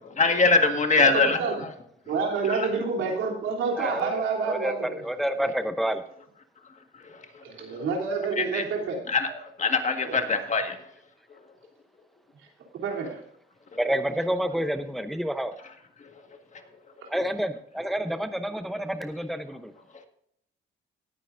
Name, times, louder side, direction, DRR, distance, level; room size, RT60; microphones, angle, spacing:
voice 1, 0.2-1.4 2.5-2.6 8.4-8.6 9.1-9.3 9.6-10.8, left 3 dB, 35° left, 6 dB, 1.7 m, -22 dB
voice 2, 1.0-1.6 2.1-5.0 5.3-5.4 7.4-9.0 10.0-10.2 12.7-13.2 17.0-17.1, right 4 dB, 80° right, 0 dB, 3.3 m, -28 dB
voice 3, 3.7-4.1 4.4-6.0 13.8-15.5 17.1-19.7, equal, ahead, 9 dB, 0.7 m, -29 dB
18.5 x 9.0 x 2.6 m, 0.69 s
cardioid pair, 90°, 20 cm